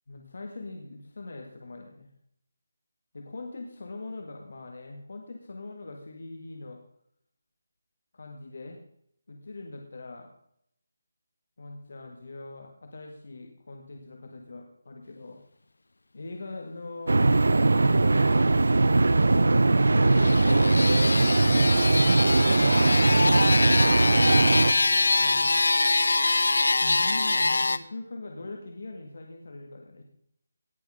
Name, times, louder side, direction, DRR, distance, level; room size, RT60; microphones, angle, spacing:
voice 1, 0.1-2.1 3.1-6.8 8.1-8.8 9.3-10.3 11.6-15.4 16.1-20.2 22.4-25.6 26.8-30.0, left 2 dB, 55° left, 3 dB, 1.8 m, -42 dB
sound 1, 17.1-24.7, right 2 dB, 80° right, 0.5 m, -20 dB
sound 2, 20.0-27.8, left 2 dB, 80° left, 0.8 m, -24 dB
18.0 x 6.5 x 5.0 m, 0.69 s
figure-of-eight pair, 175°, 0 cm